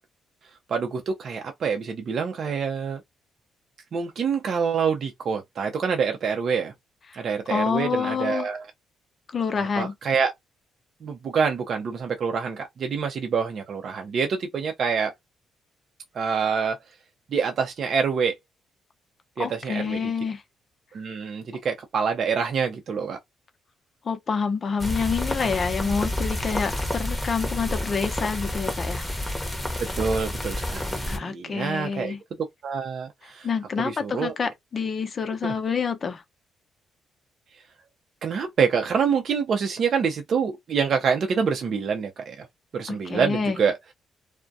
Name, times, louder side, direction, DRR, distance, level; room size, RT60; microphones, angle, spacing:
voice 1, 0.7-3.0 3.9-6.7 7.1-8.6 9.6-10.3 11.0-15.1 16.1-16.8 17.3-18.4 19.4-20.0 20.9-23.2 30.0-32.2 32.6-33.5 33.8-34.3 35.4-35.5 38.2-42.5 42.7-43.8, right 6 dB, 55° right, 0.5 m, -26 dB
voice 2, 7.5-8.5 9.3-9.9 19.4-20.4 24.0-29.0 31.1-32.2 33.4-36.2 42.9-43.6, left 5 dB, 45° left, 0.6 m, -27 dB
sound 1, 24.8-31.2, left 1 dB, 10° left, 0.8 m, -29 dB
2.3 x 2.1 x 2.6 m
cardioid pair, 90°, 0 cm